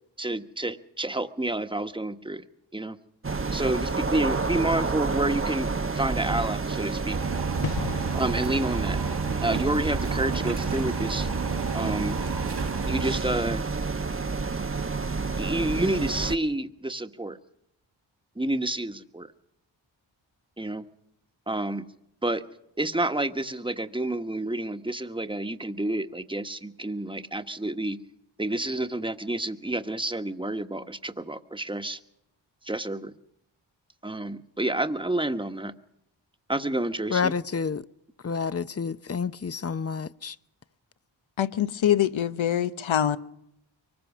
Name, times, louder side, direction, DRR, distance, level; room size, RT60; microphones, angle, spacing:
voice 1, 0.2-2.4 2.7-3.0 3.5-7.2 8.1-9.0 9.4-11.3 11.7-12.2 12.8-13.6 15.4-17.4 18.4-19.3 20.6-20.8 21.5-21.9 22.2-22.4 22.8-28.0 28.4-32.0 32.6-33.1 34.0-35.7 36.5-37.3, right 1 dB, 10° right, 1.3 m, -29 dB
sound 1, 3.2-16.4, right 4 dB, 25° right, 0.9 m, -29 dB
sound 2, 7.1-13.2, right 5 dB, 55° right, 1.4 m, -33 dB
sound 3, 7.6-14.1 14.4-14.6, left 7 dB, 50° left, 1.0 m, -42 dB
voice 2, 37.1-37.8 38.2-40.3, left 5 dB, 30° left, 0.7 m, -29 dB
voice 3, 41.4-43.2, left 10 dB, 75° left, 1.0 m, -24 dB
24.0 x 20.0 x 6.1 m
cardioid pair, 50°, 47 cm